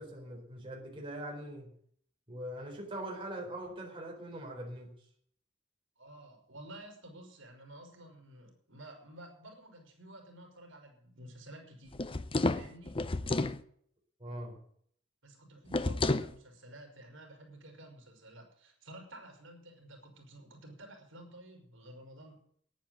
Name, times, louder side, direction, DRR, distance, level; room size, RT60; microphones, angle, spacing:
voice 1, 0.0-1.7 2.3-4.9 14.2-14.6, right 1 dB, 25° right, -1 dB, 4.3 m, -42 dB
voice 2, 6.0-12.0 12.4-13.1 15.2-22.4, right 1 dB, 80° right, 2 dB, 4.8 m, -52 dB
sound 1, 11.9-13.6 15.7-16.3, left 2 dB, 30° left, 0.7 m, -31 dB
10.5 x 10.5 x 9.0 m, 0.62 s
head